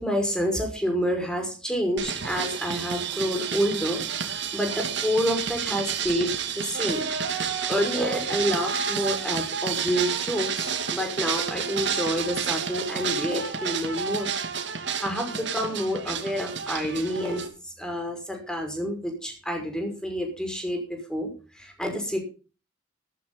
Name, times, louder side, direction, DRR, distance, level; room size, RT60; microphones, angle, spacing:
voice 1, 0.0-7.1 7.4-14.3 14.7-22.2, equal, 5° left, 3 dB, 5.5 m, -28 dB
sound 1, 2.0-17.5, right 7 dB, 65° right, 2.6 m, -30 dB
14.5 x 14.0 x 3.9 m, 0.35 s
head